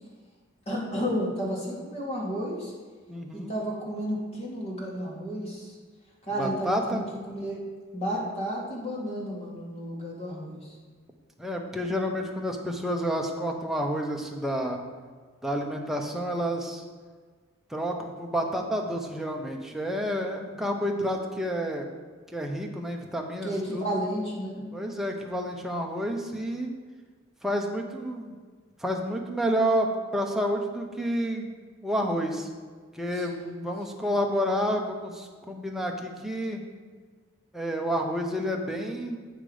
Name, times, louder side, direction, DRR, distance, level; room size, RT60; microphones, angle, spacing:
voice 1, 0.7-2.7 3.3-5.8 6.3-7.6 7.9-10.8 20.5-20.7 23.4-24.7 33.2-33.5 33.9-34.1, equal, 30° left, -4 dB, 2.2 m, -32 dB
voice 2, 3.1-3.5 6.4-7.0 11.4-14.8 15.4-16.8 17.7-21.9 22.3-23.8 24.7-26.7 27.4-28.4 28.8-31.5 31.8-32.5 32.9-36.6 37.5-39.2, equal, ahead, 1 dB, 0.9 m, -29 dB
8.1 x 5.9 x 5.0 m, 1.5 s
head